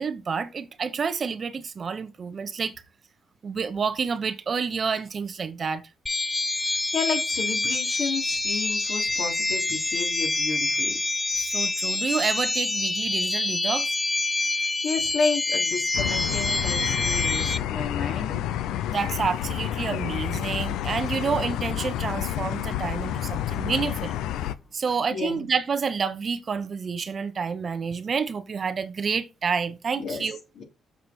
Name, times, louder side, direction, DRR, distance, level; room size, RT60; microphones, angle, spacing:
voice 1, 0.0-2.7 3.4-5.8 11.4-14.0 18.9-24.1 24.7-30.4, right 5 dB, 45° right, 1.0 m, -29 dB
sound 1, 6.1-17.6, left 2 dB, 15° left, 0.5 m, -26 dB
voice 2, 6.6-11.0 14.6-18.4 25.1-25.4 30.0-30.3 30.6-30.7, left 5 dB, 70° left, 3.2 m, -31 dB
sound 2, 15.9-24.6, left 11 dB, 90° left, 0.5 m, -29 dB
7.1 x 6.5 x 4.4 m
cardioid pair, 90°, 0 cm